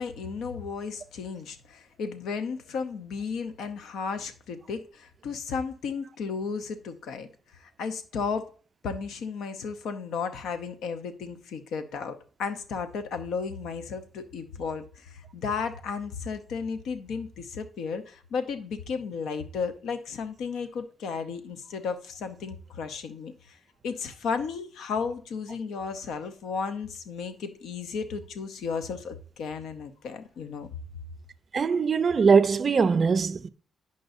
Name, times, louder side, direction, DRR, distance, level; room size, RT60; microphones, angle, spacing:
voice 1, 0.0-7.3 7.5-8.5 8.8-23.6 23.8-30.7, left 5 dB, 85° left, 0.8 m, -34 dB
voice 2, 31.5-33.5, right 5 dB, 35° right, 0.4 m, -21 dB
10.5 x 5.3 x 2.6 m
cardioid pair, 135°, 0 cm